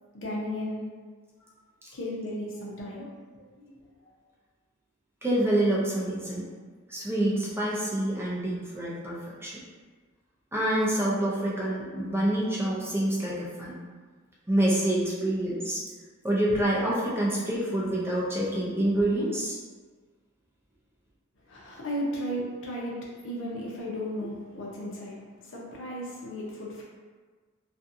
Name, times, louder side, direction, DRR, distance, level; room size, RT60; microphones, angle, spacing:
voice 1, 0.1-0.8 1.9-3.1 3.6-4.1 21.5-26.8, equal, 65° left, -3 dB, 0.7 m, -35 dB
voice 2, 5.2-6.5 6.9-9.6 10.5-13.8 14.5-15.8 16.2-19.6, right 1 dB, 10° right, -6 dB, 0.5 m, -27 dB
2.6 x 2.4 x 2.5 m, 1.5 s
head